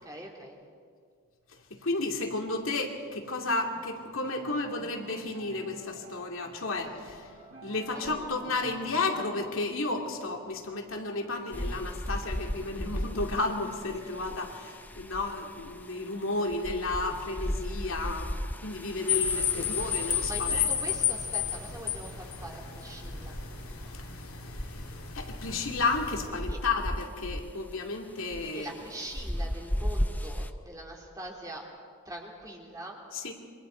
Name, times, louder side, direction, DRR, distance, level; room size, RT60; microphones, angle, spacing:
voice 1, 0.0-0.6 7.9-8.5 19.5-23.3 26.5-26.6 28.5-31.6 32.0-33.0, right 1 dB, 15° right, -1 dB, 2.8 m, -43 dB
voice 2, 1.7-7.3 7.6-20.6 25.1-28.7 33.1-33.3, left 3 dB, 70° left, 2 dB, 2.7 m, -32 dB
sound 1, 3.5-9.5, right 1 dB, 75° right, 7.0 m, -51 dB
sound 2, 11.5-30.5, equal, 10° left, 0.7 m, -37 dB
sound 3, 19.1-26.3, left 8 dB, 85° left, 2.7 m, -32 dB
27.0 x 25.0 x 4.6 m, 2.1 s
head